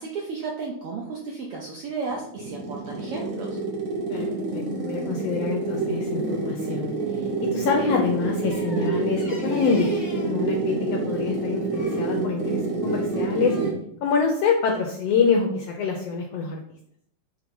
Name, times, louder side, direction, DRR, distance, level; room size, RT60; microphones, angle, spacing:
voice 1, 0.0-3.6, right 4 dB, 75° right, -1 dB, 1.3 m, -33 dB
sound 1, 2.1-13.9, right 3 dB, 55° right, 0.9 m, -27 dB
voice 2, 4.1-6.9 7.2-9.9 10.3-13.5 14.0-16.6, left 5 dB, 75° left, 2 dB, 1.5 m, -26 dB
sound 2, 8.5-10.4 11.7-12.1 12.8-13.7, left 1 dB, 30° left, 0.6 m, -43 dB
6.1 x 2.9 x 5.3 m, 0.70 s
omnidirectional pair, 3.5 m